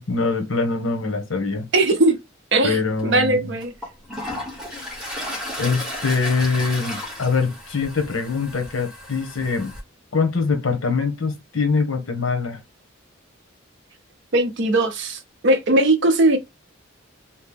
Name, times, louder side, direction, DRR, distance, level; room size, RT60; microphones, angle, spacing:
voice 1, 0.0-1.7 2.6-3.4 5.6-9.7 10.1-12.6, left 4 dB, 80° left, 0.9 m, -23 dB
voice 2, 1.7-2.2 2.5-3.7 14.3-16.4, right 2 dB, 60° right, 0.6 m, -19 dB
Toilet flush, 3.0-3.1 3.6-9.8, left 1 dB, 5° right, 0.9 m, -34 dB
2.9 x 2.1 x 3.3 m
head